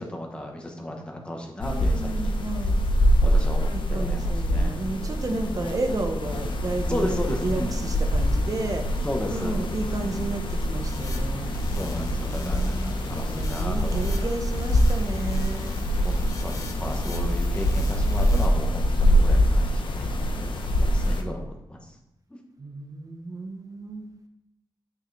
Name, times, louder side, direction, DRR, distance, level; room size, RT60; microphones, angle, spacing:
voice 1, 0.0-2.4 3.2-4.8 5.3-5.7 6.9-7.8 9.0-9.6 9.9-10.2 11.7-14.3 16.0-21.9 22.3-22.4, left 1 dB, 15° left, 1 dB, 1.1 m, -35 dB
sound 1, 1.6-21.2, equal, 75° left, 0.9 m, -24 dB
voice 2, 1.6-2.8 3.7-8.8 9.3-11.6 12.3-15.8 22.6-24.1, right 2 dB, 45° right, 5 dB, 1.0 m, -32 dB
sound 2, 10.8-18.5, left 2 dB, 40° left, 1.0 m, -40 dB
9.3 x 6.2 x 3.3 m, 0.87 s
wide cardioid pair, 165°, 8 cm